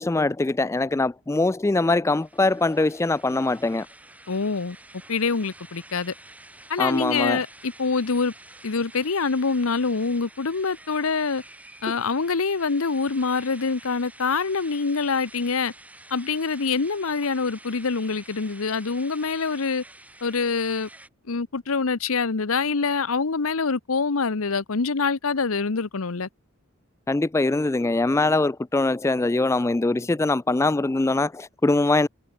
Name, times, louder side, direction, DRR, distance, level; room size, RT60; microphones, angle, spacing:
voice 1, 0.0-3.9 6.8-7.4 27.1-32.1, left 2 dB, 15° left, 0.3 m, -22 dB
sound 1, 2.1-21.1, right 2 dB, 5° right, 7.3 m, -48 dB
voice 2, 4.3-4.8 5.1-6.1 6.7-8.3 8.6-11.4 11.8-15.7 16.1-19.8 20.2-20.9 21.3-26.3, left 4 dB, 80° left, 0.9 m, -25 dB
head